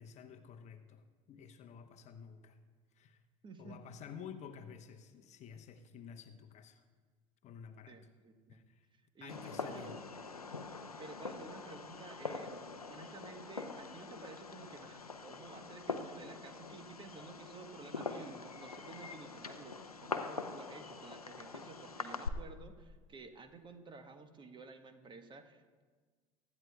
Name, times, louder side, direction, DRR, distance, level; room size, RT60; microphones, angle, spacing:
voice 1, 0.0-2.6 3.0-3.2 3.6-6.8 7.4-8.0 8.5-8.9 9.2-10.0, left 7 dB, 40° left, 7 dB, 0.9 m, -51 dB
voice 2, 3.4-3.8 7.9-8.6 8.9-10.0 11.0-12.6 12.9-25.8, right 3 dB, 25° right, 8 dB, 1.1 m, -53 dB
Fireworks, 9.3-22.3, left 4 dB, 90° left, 0.6 m, -44 dB
24.0 x 12.0 x 2.3 m, 1.5 s
figure-of-eight pair, 70°, 18 cm